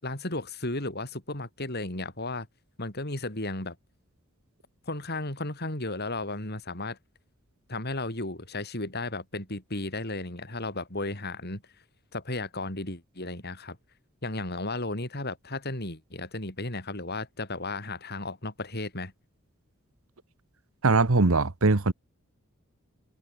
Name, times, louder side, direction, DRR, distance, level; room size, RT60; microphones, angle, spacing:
voice 1, 0.0-2.5 2.8-3.8 4.9-7.0 7.7-11.6 12.1-13.8 14.2-19.1, left 2 dB, 50° left, 6.7 m, -34 dB
voice 2, 20.8-21.9, right 3 dB, 70° right, 1.2 m, -21 dB
head